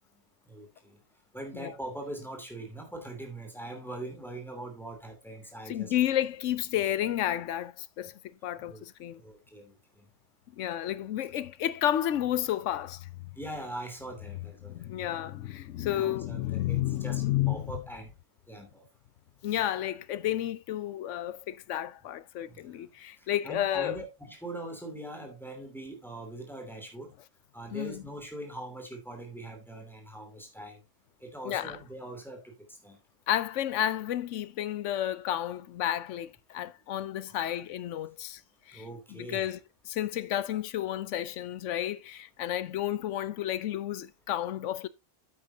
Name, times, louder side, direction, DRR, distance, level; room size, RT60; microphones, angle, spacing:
voice 1, 0.5-1.0 1.3-5.9 8.6-8.8 9.1-10.0 13.4-14.9 15.9-18.1 18.5-18.9 22.5-22.8 23.4-27.1 27.5-30.8 31.2-32.5 32.8-33.0 37.4-37.5 38.7-39.5, right 1 dB, ahead, 2.8 m, -42 dB
voice 2, 5.7-9.2 10.5-13.1 14.6-17.7 19.4-24.0 27.7-28.0 31.4-31.8 33.3-38.4 38.7-39.6 39.8-44.9, left 12 dB, 90° left, 1.0 m, -31 dB
9.3 x 8.7 x 2.8 m
omnidirectional pair, 1.2 m